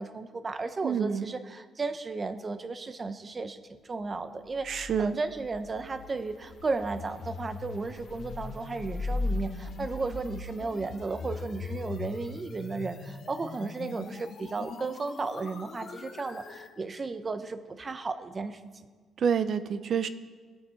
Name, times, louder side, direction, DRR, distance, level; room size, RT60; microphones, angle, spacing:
voice 1, 0.0-18.9, right 3 dB, 30° right, 10 dB, 0.9 m, -34 dB
voice 2, 0.8-1.3 4.6-5.2 19.2-20.1, right 7 dB, 60° right, 11 dB, 0.7 m, -28 dB
sound 1, 4.6-16.7, left 3 dB, 60° left, 1.3 m, -39 dB
20.5 x 8.6 x 4.5 m, 1.5 s
cardioid pair, 90°, 0 cm